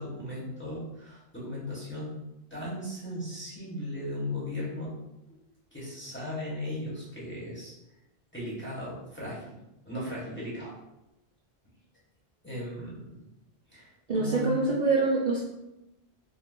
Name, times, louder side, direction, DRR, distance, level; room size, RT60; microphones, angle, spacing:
voice 1, 0.0-2.1 2.5-5.0 5.7-7.7 8.3-9.4 9.8-10.7 12.4-13.0 13.7-14.5, left 1 dB, 10° left, -8 dB, 1.0 m, -36 dB
voice 2, 14.1-15.4, right 3 dB, 55° right, -4 dB, 0.6 m, -25 dB
2.6 x 2.2 x 3.7 m, 0.92 s
omnidirectional pair, 1.1 m